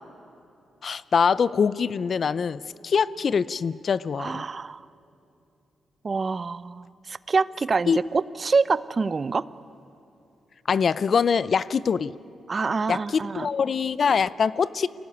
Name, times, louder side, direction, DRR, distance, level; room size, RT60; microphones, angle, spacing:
voice 1, 0.8-4.4 7.9-8.0 10.7-12.1 12.9-14.9, left 6 dB, 55° left, 18 dB, 0.6 m, -24 dB
voice 2, 4.2-4.8 6.0-9.5 12.5-13.5, right 4 dB, 40° right, 17 dB, 0.6 m, -26 dB
24.5 x 17.5 x 9.4 m, 2.7 s
cardioid pair, 70°, 0 cm